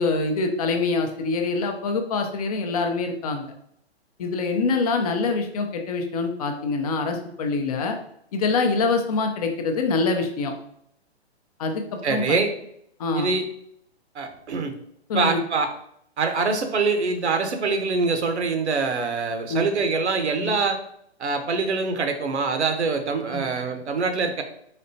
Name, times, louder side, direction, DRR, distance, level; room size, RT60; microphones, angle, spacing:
voice 1, 0.0-3.5 4.2-8.0 8.3-10.5 11.6-12.4 13.0-13.3 15.1-15.4 19.5-19.7 20.4-20.5 23.3-23.4, left 3 dB, 35° left, 4 dB, 0.6 m, -25 dB
voice 2, 12.0-12.5 13.1-13.4 14.1-14.7 15.1-15.7 16.2-20.8 21.2-24.4, right 4 dB, 85° right, 7 dB, 0.8 m, -24 dB
4.2 x 3.1 x 2.7 m, 0.70 s
hypercardioid pair, 140°, 33 cm